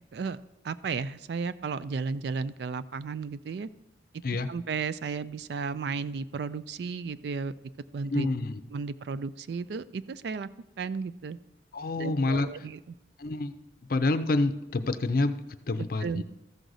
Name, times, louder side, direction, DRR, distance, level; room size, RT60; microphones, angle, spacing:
voice 1, 0.6-3.7 4.5-7.5 7.9-8.3 8.7-10.5 10.8-11.4 12.0-12.8 16.0-16.2, right 5 dB, 60° right, 15 dB, 0.3 m, -34 dB
voice 2, 4.2-4.6 8.1-8.6 11.7-12.5 13.2-13.6 13.9-16.2, left 2 dB, 50° left, 10 dB, 0.5 m, -28 dB
14.0 x 6.3 x 3.9 m, 0.96 s
head